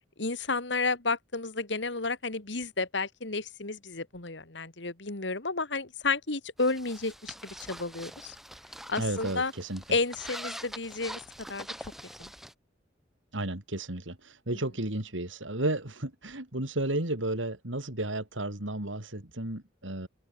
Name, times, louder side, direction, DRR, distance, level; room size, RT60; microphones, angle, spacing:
voice 1, 0.2-8.4 8.9-9.5 9.9-11.2 11.5-11.9 12.2-12.3, left 3 dB, 70° left, 2.2 m, -31 dB
sound 1, 6.6-12.5, equal, ahead, 4.8 m, -44 dB
voice 2, 9.0-9.8 13.3-20.1, right 1 dB, 90° right, 3.7 m, -33 dB
head